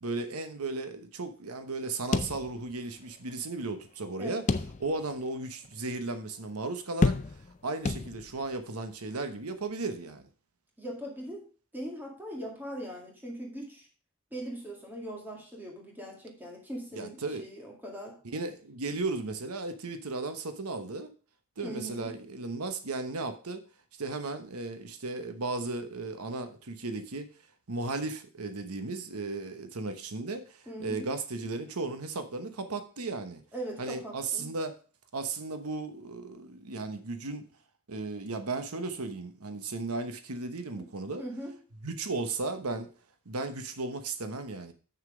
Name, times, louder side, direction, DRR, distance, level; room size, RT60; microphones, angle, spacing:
voice 1, 0.0-4.5 4.8-7.4 7.6-10.3 16.9-17.4 18.3-21.1 21.6-23.6 24.0-27.3 27.7-33.4 33.8-34.8 35.1-37.4 37.9-41.2 41.8-42.9 43.3-44.7, right 3 dB, 90° right, 9 dB, 1.1 m, -35 dB
sound 1, 2.1-3.0 3.3-3.4 4.5-5.1 5.6-5.7 7.0-7.6 7.9-8.5, left 3 dB, 35° left, 0.5 m, -29 dB
voice 2, 10.8-13.9 14.3-18.2 21.6-22.2 30.7-31.1 33.5-34.5 40.8-40.9 41.2-41.6, right 1 dB, 10° right, 0 dB, 2.1 m, -40 dB
7.4 x 6.6 x 4.9 m, 0.38 s
head